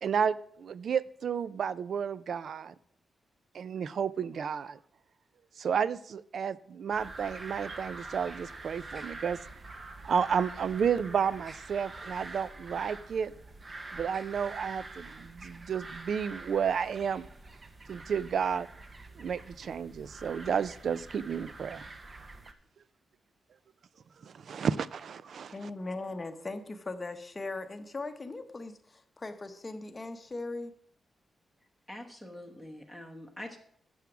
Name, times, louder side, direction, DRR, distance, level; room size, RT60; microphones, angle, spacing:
voice 1, 0.0-2.7 3.5-4.8 5.6-9.4 10.0-13.3 13.9-17.3 17.9-18.7 19.2-21.9 24.2-25.5, right 7 dB, 55° right, 19 dB, 0.4 m, -31 dB
sound 1, 6.9-22.5, right 2 dB, 25° right, 0.7 m, -46 dB
voice 2, 25.5-30.7, left 2 dB, 20° left, 8 dB, 0.8 m, -39 dB
voice 3, 31.9-33.6, left 1 dB, 5° right, 2 dB, 1.1 m, -44 dB
9.4 x 7.1 x 6.0 m, 0.66 s
wide cardioid pair, 160°, 0 cm